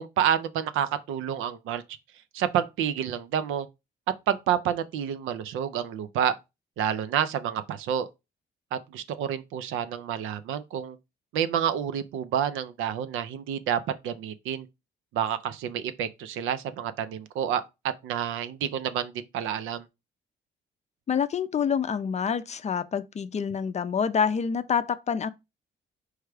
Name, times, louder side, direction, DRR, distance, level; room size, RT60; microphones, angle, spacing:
voice 1, 0.0-1.8 2.3-3.7 4.3-6.4 6.8-8.1 8.7-11.0 11.3-14.7 15.1-17.6 18.0-19.8, right 9 dB, 90° right, 0.5 m, -29 dB
voice 2, 21.1-25.3, left 7 dB, 35° left, 0.4 m, -27 dB
4.7 x 2.2 x 4.8 m
cardioid pair, 90°, 20 cm